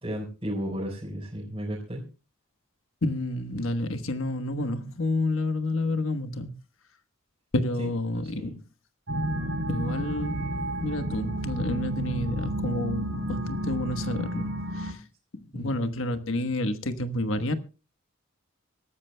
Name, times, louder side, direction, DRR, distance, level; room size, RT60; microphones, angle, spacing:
voice 1, 0.0-2.0 7.8-8.5 15.5-15.7, equal, 25° right, 4.2 m, -34 dB
voice 2, 3.0-6.5 7.5-8.6 9.7-15.0 15.3-17.5, left 1 dB, 70° left, 1.3 m, -29 dB
sound 1, 9.1-14.9, right 1 dB, 65° right, 3.3 m, -31 dB
24.5 x 13.5 x 2.3 m
head